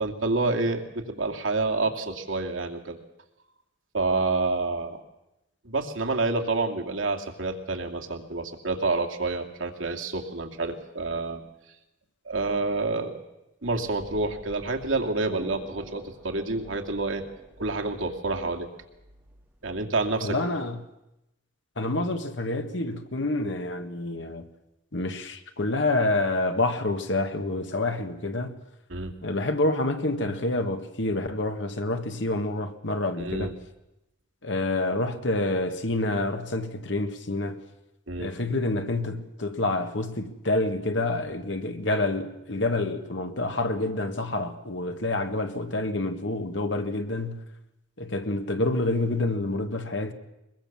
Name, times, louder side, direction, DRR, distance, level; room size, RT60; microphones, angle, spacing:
voice 1, 0.0-3.0 3.9-5.0 5.6-11.4 12.2-13.2 13.6-17.2 17.6-18.7 19.6-20.4 28.9-29.1 33.2-33.5 38.1-38.3, right 3 dB, 90° right, 2.5 m, -28 dB
sound 1, 13.7-20.5, equal, 5° right, 4.1 m, -49 dB
voice 2, 20.2-20.8 21.8-24.5 24.9-28.6 29.2-33.5 34.4-37.6 38.2-47.5 48.0-50.1, left 2 dB, 70° left, 1.7 m, -28 dB
22.0 x 21.5 x 7.3 m
head